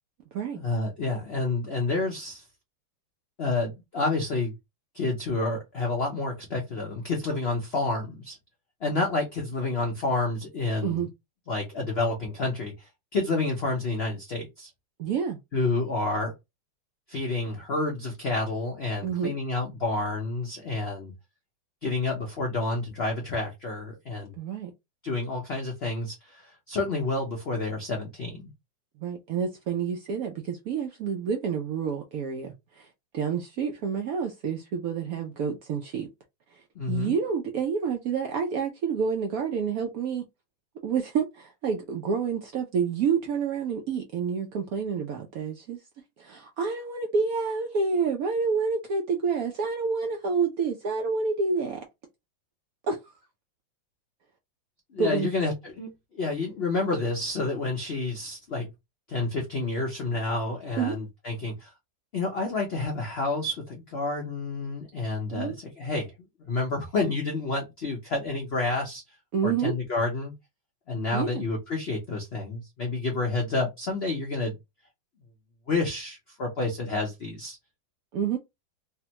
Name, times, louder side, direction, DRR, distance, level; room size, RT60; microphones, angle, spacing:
voice 1, 0.5-2.4 3.4-4.5 4.9-8.4 8.8-11.0 11.5-14.7 15.5-16.3 17.1-21.1 21.8-24.3 25.0-28.4 36.8-37.2 54.9-58.7 59.1-61.7 62.1-66.1 66.4-69.0 69.4-70.3 70.9-74.5 75.7-77.6, left 3 dB, 75° left, 0.5 m, -29 dB
voice 2, 15.0-15.4 19.0-19.3 24.3-24.7 29.0-32.9 33.1-36.1 36.5-40.2 40.8-45.8 46.2-51.9 52.9-53.0 55.0-55.3 60.8-61.0 65.3-65.5 69.3-69.7 71.1-71.4 78.1-78.4, right 6 dB, 75° right, 0.8 m, -28 dB
3.3 x 2.1 x 2.8 m
omnidirectional pair, 2.0 m